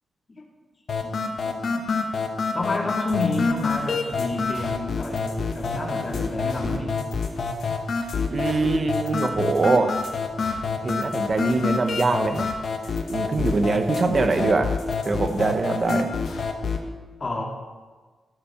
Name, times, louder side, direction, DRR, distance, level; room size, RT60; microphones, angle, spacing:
sound 1, 0.9-16.9, left 4 dB, 50° left, 1.5 m, -27 dB
voice 1, 1.0-1.9 2.5-7.0 17.2-17.4, left 2 dB, 30° left, -1 dB, 2.7 m, -30 dB
sound 2, 3.1-16.5, left 5 dB, 85° left, 2.1 m, -43 dB
voice 2, 8.3-9.9 10.8-12.5 13.1-14.7 15.0-16.1, right 3 dB, 35° right, 7 dB, 1.2 m, -23 dB
15.0 x 13.0 x 4.5 m, 1.4 s
wide cardioid pair, 160°, 0 cm